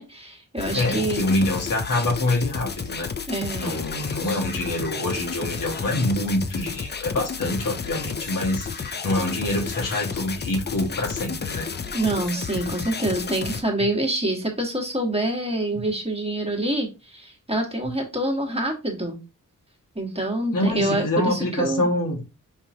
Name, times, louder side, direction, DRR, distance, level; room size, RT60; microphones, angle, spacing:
voice 1, 0.0-1.2 3.3-3.8 4.2-4.4 11.9-19.2 19.9-21.9, right 1 dB, 20° right, 2 dB, 1.4 m, -26 dB
sound 1, 0.6-13.6, left 5 dB, 30° left, 0.5 m, -32 dB
voice 2, 0.7-3.1 3.6-11.7 13.1-13.3 20.5-22.2, left 1 dB, 80° left, 0 dB, 1.5 m, -26 dB
5.1 x 2.9 x 2.6 m, 0.28 s
cardioid pair, 55°, 32 cm